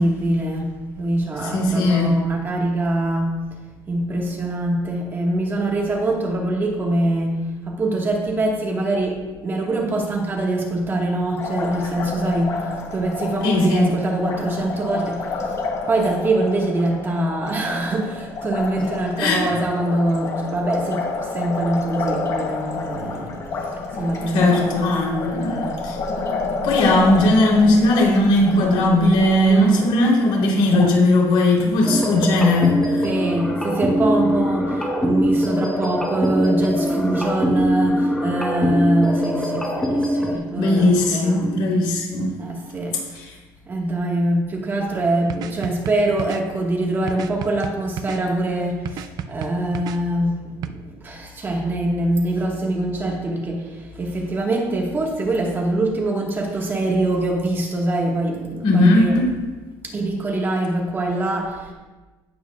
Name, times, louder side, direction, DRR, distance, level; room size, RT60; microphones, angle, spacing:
voice 1, 0.0-3.4 3.9-15.3 15.9-23.4 24.0-25.8 29.5-29.9 33.0-41.6 42.4-43.1 43.7-59.3 59.8-61.7, right 1 dB, 25° right, -1 dB, 1.6 m, -24 dB
voice 2, 1.5-2.2 13.4-13.9 19.2-19.4 24.3-26.0 26.6-33.1 40.6-42.3 43.1-43.3 58.6-59.3, left 1 dB, 75° left, -2 dB, 3.5 m, -18 dB
Liquid, 11.4-30.9, left 3 dB, 35° left, 1.3 m, -30 dB
sound 1, 31.8-40.3, equal, 5° left, 1.2 m, -22 dB
sound 2, 45.3-46.4 47.1-48.2 48.9-50.0 50.6-50.7, right 8 dB, 45° right, 0.5 m, -31 dB
16.5 x 8.7 x 2.4 m, 1.2 s
cardioid pair, 165°, 9 cm